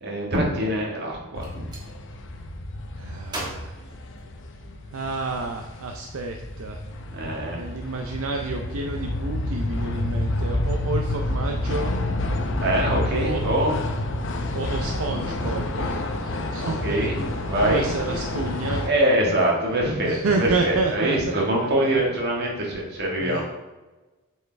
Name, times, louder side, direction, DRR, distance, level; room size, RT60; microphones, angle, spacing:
voice 1, 0.0-1.7 7.1-7.7 12.6-13.7 16.6-17.9 18.8-23.4, right 1 dB, 50° right, -2 dB, 1.7 m, -24 dB
Gunshot gunfire, 1.2-1.9 3.3-4.8, right 1 dB, 20° right, 1.5 m, -37 dB
sound 1, 1.3-18.9, left 1 dB, 60° left, 0.7 m, -29 dB
voice 2, 3.0-3.7 4.9-6.8 7.5-11.9 13.2-13.4 14.5-17.1 17.4-18.9 20.0-22.0 23.2-23.4, right 3 dB, 70° right, 3 dB, 0.6 m, -30 dB
7.9 x 4.6 x 3.4 m, 1.1 s
head